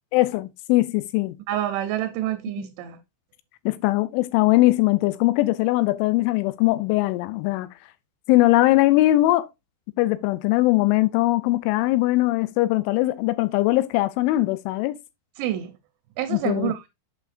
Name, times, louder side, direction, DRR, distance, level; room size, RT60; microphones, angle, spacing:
voice 1, 0.1-1.4 3.7-7.7 8.3-9.5 10.0-15.0 16.3-16.7, left 18 dB, 85° left, 2.9 m, -21 dB
voice 2, 1.5-3.0 15.4-15.7 16.2-16.9, right 13 dB, 80° right, 2.6 m, -27 dB
8.1 x 6.2 x 2.5 m
omnidirectional pair, 5.7 m